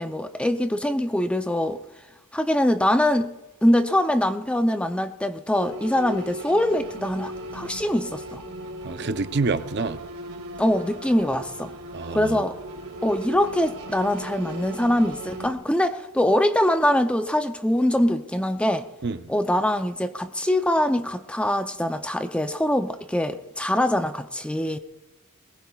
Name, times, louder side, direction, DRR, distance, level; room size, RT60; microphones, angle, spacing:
voice 1, 0.0-1.8 2.3-3.3 3.6-8.4 10.6-11.7 12.1-12.6 13.0-18.9 19.3-24.8, left 1 dB, 5° left, 8 dB, 0.5 m, -23 dB
sound 1, 5.5-15.5, right 1 dB, 85° right, 2.2 m, -37 dB
voice 2, 8.8-10.0 11.9-12.4 19.0-19.3, right 3 dB, 50° right, 11 dB, 0.6 m, -27 dB
22.0 x 19.5 x 2.4 m, 1.0 s
head